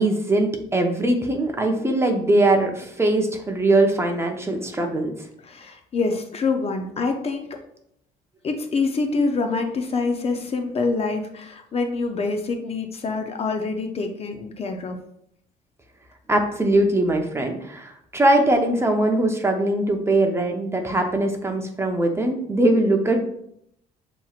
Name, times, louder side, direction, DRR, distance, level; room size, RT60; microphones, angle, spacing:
voice 1, 0.0-5.1 16.3-23.2, right 1 dB, 15° right, 3 dB, 0.7 m, -21 dB
voice 2, 5.4-7.6 8.4-15.0, left 4 dB, 35° left, 5 dB, 0.6 m, -26 dB
7.1 x 3.0 x 2.4 m, 0.72 s
cardioid pair, 110°, 17 cm